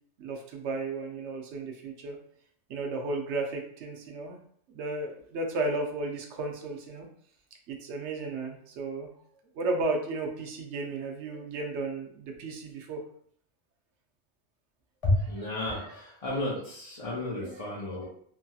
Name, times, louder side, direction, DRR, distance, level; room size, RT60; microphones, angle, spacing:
voice 1, 0.2-2.2 2.7-4.4 4.7-7.1 7.7-9.1 9.5-13.0 17.4-17.5, right 2 dB, 75° right, 2 dB, 0.9 m, -34 dB
voice 2, 15.0-18.1, left 1 dB, 40° left, -6 dB, 0.6 m, -31 dB
3.0 x 2.7 x 2.3 m, 0.63 s
omnidirectional pair, 1.2 m